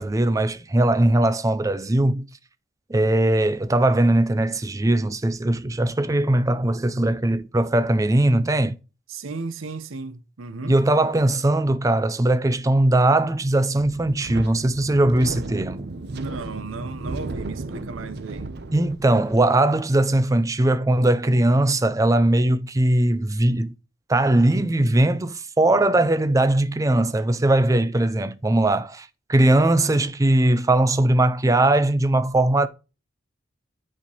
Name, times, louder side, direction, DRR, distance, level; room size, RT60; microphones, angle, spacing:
voice 1, 0.0-2.2 2.9-8.7 10.6-15.9 18.7-23.7 24.1-32.7, right 1 dB, 15° right, 0.4 m, -20 dB
voice 2, 9.1-10.8 16.1-18.5, right 3 dB, 90° right, 0.8 m, -34 dB
Wind, 13.8-19.4, right 2 dB, 55° right, 0.6 m, -35 dB
9.7 x 4.4 x 2.9 m
head